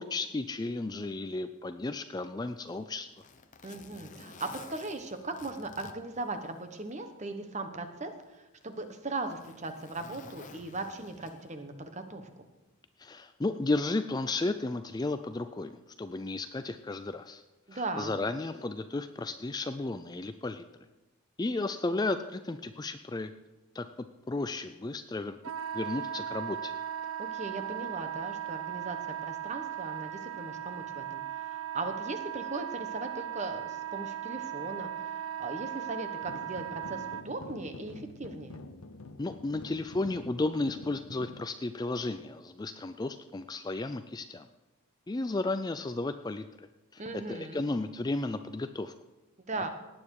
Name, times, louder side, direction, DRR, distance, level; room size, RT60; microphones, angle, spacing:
voice 1, 0.0-3.1 13.0-15.7 16.0-17.4 17.7-20.6 21.4-23.3 23.7-23.9 24.3-25.4 25.7-26.7 39.2-44.5 45.1-46.7 46.9-47.0 47.3-48.9, left 2 dB, 20° left, 10 dB, 0.3 m, -33 dB
Zipper (clothing), 2.5-7.0 7.3-7.4 8.2-11.7 12.9-13.1, left 4 dB, 35° left, 0.8 m, -52 dB
voice 2, 3.6-12.3 17.7-18.2 27.2-29.0 29.2-38.6 47.0-47.6 49.5-49.7, right 2 dB, 30° right, 7 dB, 1.1 m, -38 dB
Wind instrument woodwind instrument, 25.4-37.2, right 10 dB, 75° right, 0.7 m, -38 dB
sound 1, 36.2-41.4, left 2 dB, 70° left, 0.7 m, -47 dB
18.0 x 8.9 x 4.8 m, 1.1 s
head